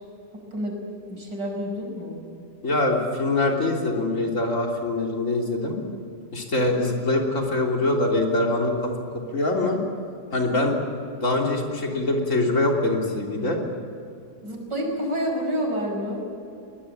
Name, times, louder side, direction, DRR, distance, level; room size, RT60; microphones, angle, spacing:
voice 1, 1.1-2.2 14.4-16.2, equal, 80° right, 1 dB, 5.9 m, -28 dB
voice 2, 2.6-5.8 6.3-8.9 9.3-9.8 10.3-10.8 11.2-13.6, left 2 dB, 45° left, 0 dB, 3.6 m, -23 dB
22.5 x 20.0 x 8.8 m, 2.6 s
omnidirectional pair, 1.9 m